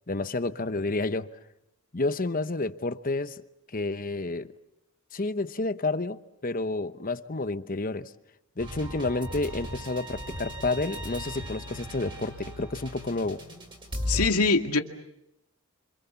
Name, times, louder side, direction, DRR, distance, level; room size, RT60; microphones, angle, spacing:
voice 1, 0.1-1.3 1.9-3.4 3.7-4.5 5.1-8.1 8.6-13.4, left 2 dB, 40° left, 0.9 m, -30 dB
sound 1, 8.6-14.3, equal, 20° right, 5.1 m, -37 dB
voice 2, 14.1-14.8, left 3 dB, 85° left, 2.1 m, -23 dB
28.5 x 26.5 x 7.1 m
head